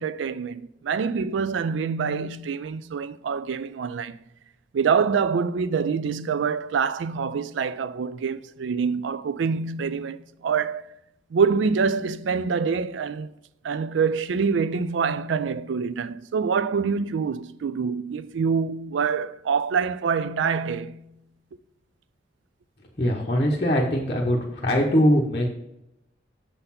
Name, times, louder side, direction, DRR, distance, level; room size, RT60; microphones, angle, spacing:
voice 1, 0.0-4.2 4.7-10.9 11.3-13.3 13.6-21.0, right 5 dB, 80° right, 0.4 m, -25 dB
voice 2, 23.0-25.5, equal, 35° left, 0.8 m, -22 dB
6.7 x 4.1 x 5.6 m
head